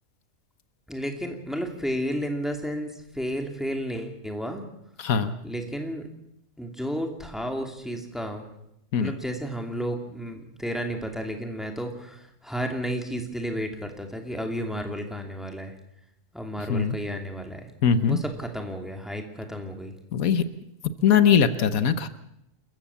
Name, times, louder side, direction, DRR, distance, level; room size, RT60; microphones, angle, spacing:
voice 1, 0.9-4.7 5.4-6.0 6.6-8.4 9.0-15.7 16.3-17.7 18.1-19.9, equal, ahead, 4 dB, 2.7 m, -32 dB
voice 2, 5.0-5.3 8.9-9.1 16.7-17.0 17.8-18.2 20.1-20.4 21.0-22.1, left 7 dB, 80° left, 12 dB, 1.4 m, -21 dB
28.5 x 14.5 x 7.2 m, 0.81 s
omnidirectional pair, 1.5 m